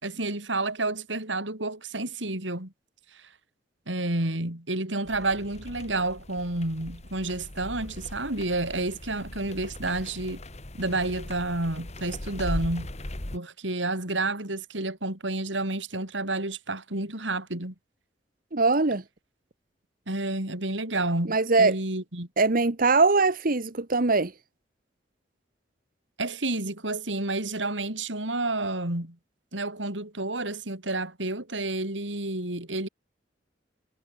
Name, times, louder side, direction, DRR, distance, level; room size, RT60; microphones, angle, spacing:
voice 1, 0.0-2.7 3.1-3.3 3.9-10.4 10.7-12.9 13.3-17.7 20.1-22.3 26.2-29.2 29.5-32.9, right 2 dB, 90° right, 5.0 m, -30 dB
sound 1, 5.1-13.4, left 1 dB, 40° left, 1.9 m, -39 dB
voice 2, 18.5-19.0 21.2-21.8 22.4-24.3, right 3 dB, 50° right, 1.4 m, -22 dB
head